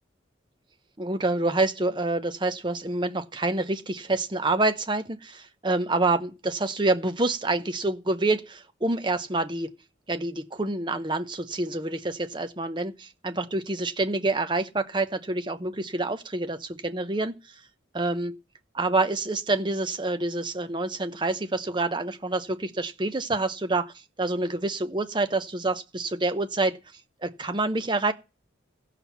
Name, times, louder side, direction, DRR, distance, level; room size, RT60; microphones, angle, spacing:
voice 1, 1.0-9.7 10.1-17.3 17.9-18.3 18.7-26.8 27.2-28.1, right 2 dB, 25° right, 0.7 m, -27 dB
15.0 x 5.8 x 7.0 m
head